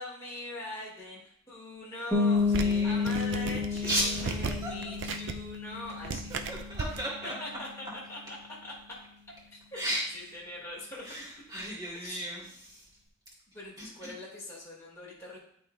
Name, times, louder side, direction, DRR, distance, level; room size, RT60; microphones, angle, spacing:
voice 1, 0.0-6.3 7.4-7.7 8.1-8.4 8.6-8.7 9.5-9.8 10.1-11.0 12.0-12.2 13.5-15.4, left 1 dB, 15° left, -6 dB, 1.8 m, -42 dB
sound 1, 2.1-7.7, left 4 dB, 5° right, 1.4 m, -31 dB
sound 2, 2.4-7.0, right 4 dB, 60° right, 0.5 m, -37 dB
voice 2, 2.5-3.0 3.8-4.7 6.5-7.3 9.7-10.1 10.9-12.9 13.8-14.1, right 1 dB, 20° right, -6 dB, 2.6 m, -35 dB
11.5 x 3.9 x 2.2 m, 0.68 s
head